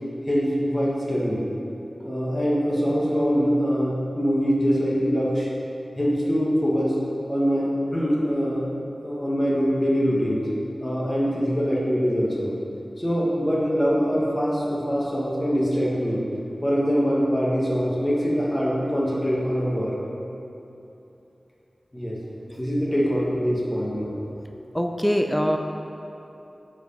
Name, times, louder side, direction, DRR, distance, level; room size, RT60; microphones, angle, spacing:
voice 1, 0.3-1.4 2.0-5.5 6.0-7.0 7.3-10.5 10.8-12.5 13.0-16.2 16.6-19.9 21.9-22.2 22.6-24.1, equal, 20° left, -5 dB, 1.4 m, -23 dB
voice 2, 24.7-25.6, equal, ahead, 4 dB, 0.4 m, -22 dB
8.0 x 4.7 x 5.3 m, 3.0 s
wide cardioid pair, 75°, 0 cm